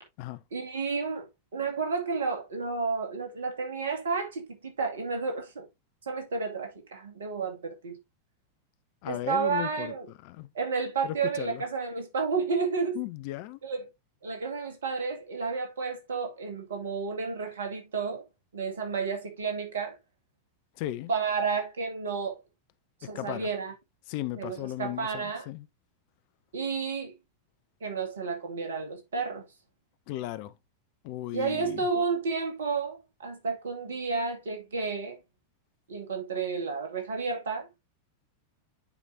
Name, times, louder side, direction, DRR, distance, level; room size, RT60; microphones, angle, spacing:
voice 1, 0.5-5.7 6.0-8.0 9.1-10.1 10.5-13.0 13.6-13.9 14.2-18.2 18.5-20.0 21.1-22.4 23.0-23.7 24.4-25.5 26.5-27.1 27.8-29.5 31.3-35.2 35.9-37.7, right 5 dB, 65° right, 2.2 m, -31 dB
voice 2, 9.0-9.9 10.2-10.5 11.0-11.6 13.0-13.6 20.8-21.1 23.1-23.5 24.1-25.7 30.1-30.5 31.0-31.8, left 15 dB, 45° left, 0.6 m, -36 dB
9.3 x 4.9 x 2.7 m
figure-of-eight pair, 90°, 0 cm